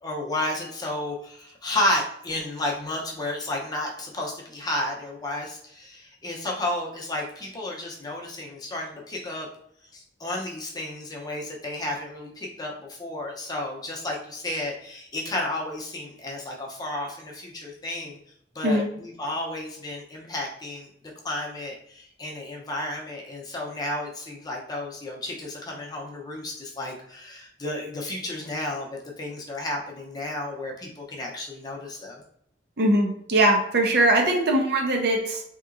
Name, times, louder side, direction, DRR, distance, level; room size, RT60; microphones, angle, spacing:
voice 1, 0.0-9.5 9.9-18.2 18.5-20.9 21.2-32.2, left 1 dB, 20° left, -1 dB, 0.6 m, -32 dB
voice 2, 32.8-35.4, right 1 dB, 60° right, 2 dB, 0.6 m, -21 dB
3.5 x 2.8 x 2.5 m, 0.70 s
head